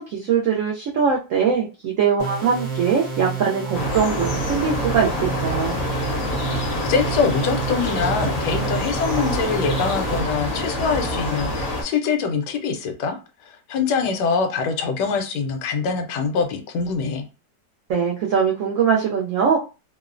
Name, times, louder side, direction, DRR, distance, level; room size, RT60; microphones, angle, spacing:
voice 1, 0.0-5.8 17.9-19.6, right 6 dB, 80° right, -2 dB, 0.7 m, -21 dB
sound 1, 2.2-10.2, right 5 dB, 50° right, 1.0 m, -30 dB
sound 2, 3.7-11.8, left 1 dB, 50° left, 0.7 m, -26 dB
voice 2, 6.8-13.2 13.4-17.2, left 5 dB, 75° left, 6 dB, 1.2 m, -24 dB
2.9 x 2.0 x 2.4 m, 0.31 s
omnidirectional pair, 1.9 m